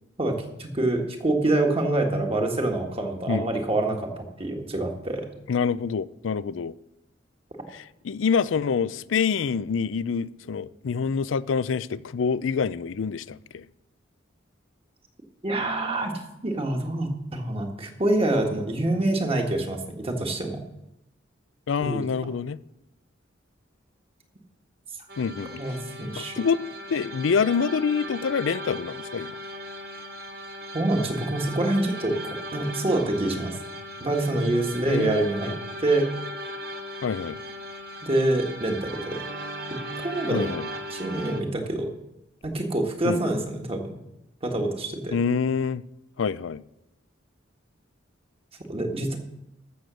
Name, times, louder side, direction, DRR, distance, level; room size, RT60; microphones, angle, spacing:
voice 1, 0.6-5.3 15.4-20.6 21.8-22.0 25.6-26.4 30.7-33.5 34.0-36.1 38.0-39.2 39.7-40.5 40.9-41.9 42.4-43.9 44.4-45.2 48.7-49.2, right 2 dB, 30° right, 1.7 m, -26 dB
voice 2, 5.5-6.7 7.7-13.6 21.7-22.6 25.2-25.6 26.2-26.6 26.9-29.3 34.9-35.3 37.0-37.4 40.3-40.7 43.0-43.2 45.1-45.8 46.2-46.6, left 6 dB, 75° left, 0.4 m, -26 dB
sound 1, 25.1-41.4, equal, 55° right, 1.3 m, -37 dB
14.0 x 6.9 x 6.3 m
head